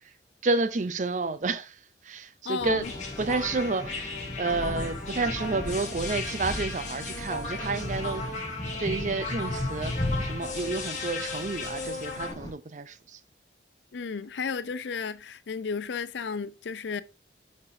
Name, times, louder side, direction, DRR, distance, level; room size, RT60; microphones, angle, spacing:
voice 1, 0.4-2.9 3.2-8.2 8.8-13.2, right 3 dB, 45° right, 0.5 m, -30 dB
voice 2, 2.4-2.9 13.9-17.0, left 5 dB, 80° left, 0.5 m, -33 dB
sound 1, 2.6-12.5, left 1 dB, 20° left, 1.0 m, -36 dB
sound 2, 2.8-12.3, left 3 dB, 40° left, 1.7 m, -36 dB
9.8 x 4.3 x 2.7 m
head